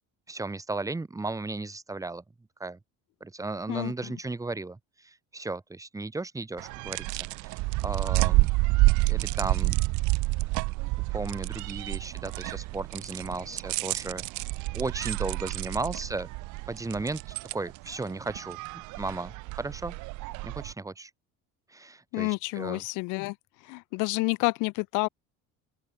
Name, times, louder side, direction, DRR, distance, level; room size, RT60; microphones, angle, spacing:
voice 1, 0.3-2.2 2.6-2.8 3.2-4.8 5.0-7.0 7.8-8.5 9.1-9.7 11.1-14.5 14.7-16.3 16.7-17.2 17.5-20.0 20.4-21.1 21.7-22.8, right 3 dB, 10° right, 4.5 m, -35 dB
voice 2, 3.7-4.1 22.1-23.3 23.7-25.1, left 26 dB, 85° left, 3.0 m, -29 dB
sound 1, 6.6-20.7, right 24 dB, 75° right, 1.1 m, -29 dB
open air
cardioid pair, 150°, 30 cm